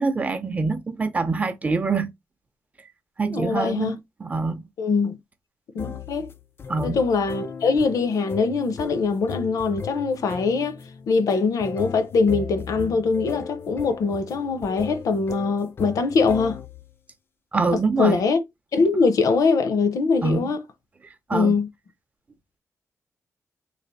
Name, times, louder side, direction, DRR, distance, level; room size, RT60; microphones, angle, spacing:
voice 1, 0.0-2.1 3.2-4.6 6.7-7.0 17.5-18.2 20.2-20.5 21.3-21.6, right 4 dB, 25° right, 0.5 m, -25 dB
voice 2, 3.3-4.0 4.8-5.2 5.7-6.3 6.8-10.7 11.1-16.6 18.0-18.4 18.7-20.6 21.3-21.7, left 4 dB, 80° left, 0.7 m, -22 dB
sound 1, 5.8-16.9, left 6 dB, 40° left, 0.4 m, -37 dB
3.3 x 2.4 x 3.9 m
wide cardioid pair, 160°, 6 cm